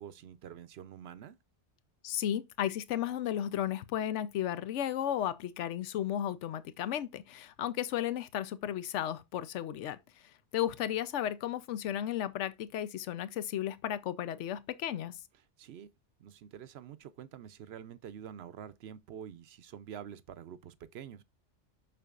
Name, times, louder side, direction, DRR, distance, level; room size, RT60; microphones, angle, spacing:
voice 1, 0.0-1.4 15.6-15.9 16.2-21.2, right 9 dB, 65° right, 0.8 m, -47 dB
voice 2, 2.0-10.0 10.5-15.2, left 11 dB, 85° left, 0.9 m, -34 dB
6.7 x 6.3 x 2.4 m
omnidirectional pair, 1.2 m